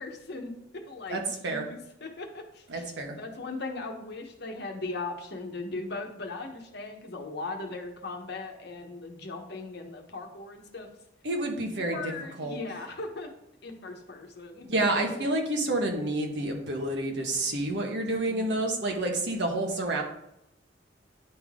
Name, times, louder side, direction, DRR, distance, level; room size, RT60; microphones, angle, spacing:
voice 1, 0.0-2.8 3.2-10.9 11.7-13.3 13.6-14.8 18.2-18.5, left 3 dB, 60° left, 3 dB, 1.1 m, -38 dB
voice 2, 1.1-1.7 2.7-3.2 11.2-12.0 12.4-12.6 14.7-20.0, right 2 dB, 65° right, 1 dB, 1.3 m, -29 dB
10.0 x 3.8 x 3.6 m, 0.83 s
head